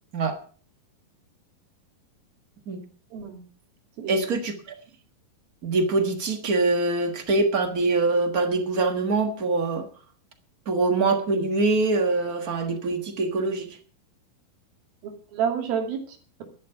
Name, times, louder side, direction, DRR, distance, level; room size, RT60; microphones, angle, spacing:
voice 1, 3.1-3.4 4.0-4.4 15.0-16.4, right 7 dB, 85° right, 4 dB, 4.3 m, -30 dB
voice 2, 4.1-4.7 5.6-9.9 10.6-13.8, right 3 dB, 50° right, 7 dB, 1.0 m, -24 dB
13.0 x 11.0 x 5.6 m, 0.42 s
omnidirectional pair, 4.1 m